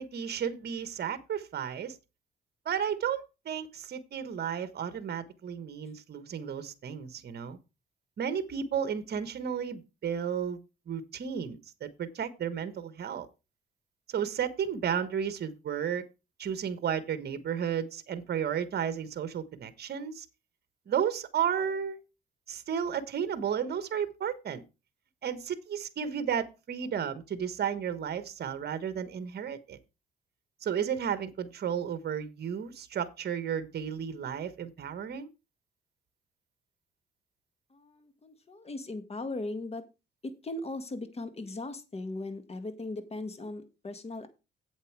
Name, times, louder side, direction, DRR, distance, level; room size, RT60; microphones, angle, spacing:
voice 1, 0.0-2.0 2.6-7.6 8.2-10.6 10.9-13.3 14.1-16.1 16.4-20.2 20.9-22.0 22.5-24.6 25.2-29.8 30.6-35.3, right 8 dB, 55° right, 1.3 m, -33 dB
voice 2, 37.7-39.9 40.2-44.3, left 2 dB, 30° left, 1.8 m, -38 dB
8.1 x 8.0 x 4.7 m
cardioid pair, 90°, 20 cm